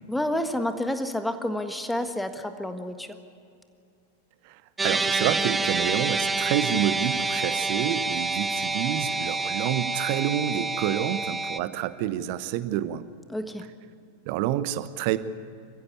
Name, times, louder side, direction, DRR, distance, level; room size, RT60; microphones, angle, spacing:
voice 1, 0.1-3.1 13.3-13.6, left 1 dB, 5° left, 8 dB, 1.6 m, -29 dB
voice 2, 4.4-13.0 14.2-15.2, right 12 dB, 45° right, 14 dB, 1.1 m, -28 dB
sound 1, 4.8-11.6, right 3 dB, 10° right, 0.8 m, -27 dB
28.0 x 15.0 x 8.5 m, 2.5 s
figure-of-eight pair, 90°, 0 cm